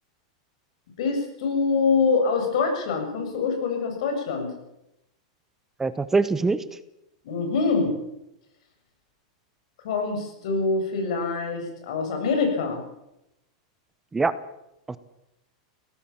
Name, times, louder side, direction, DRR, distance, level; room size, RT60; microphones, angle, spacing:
voice 1, 1.0-4.5 7.2-7.9 9.8-12.8, left 4 dB, 70° left, 4 dB, 7.4 m, -25 dB
voice 2, 5.8-6.6 14.1-14.3 14.9-15.0, right 4 dB, 10° right, 14 dB, 0.8 m, -23 dB
21.5 x 17.5 x 7.3 m, 0.87 s
supercardioid pair, 145°, 4 cm